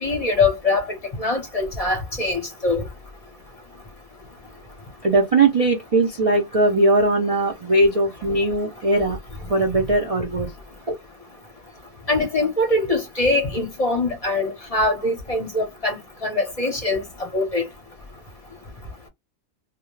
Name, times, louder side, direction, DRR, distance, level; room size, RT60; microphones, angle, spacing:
voice 1, 0.0-0.9 1.2-2.8 12.1-17.0 17.3-17.6, left 2 dB, 35° left, 0.7 m, -23 dB
voice 2, 5.0-9.2 9.5-10.5 10.9-11.0, right 2 dB, 65° right, 0.3 m, -19 dB
2.3 x 2.1 x 2.9 m
omnidirectional pair, 1.4 m